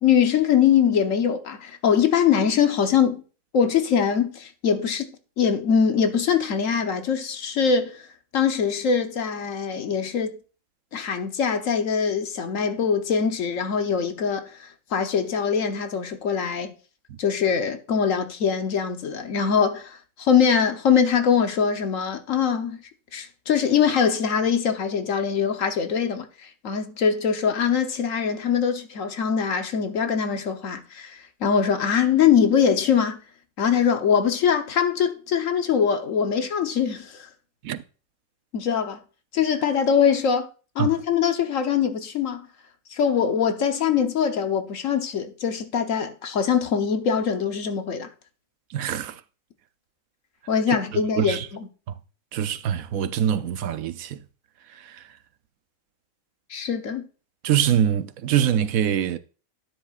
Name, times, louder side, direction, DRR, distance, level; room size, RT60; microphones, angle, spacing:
voice 1, 0.0-3.2 3.5-5.1 5.4-8.0 8.3-10.3 10.9-16.7 17.2-22.8 23.1-26.3 26.6-33.2 33.6-37.3 38.5-39.0 39.3-40.5 40.7-42.5 42.9-48.1 50.5-51.4 56.5-57.0, left 7 dB, 70° left, 1.3 m, -22 dB
voice 2, 48.7-49.2 50.7-50.8 51.2-51.5 52.3-54.2 54.8-55.0 57.4-59.2, right 9 dB, 80° right, 1.1 m, -24 dB
12.0 x 9.8 x 2.4 m
omnidirectional pair, 1.4 m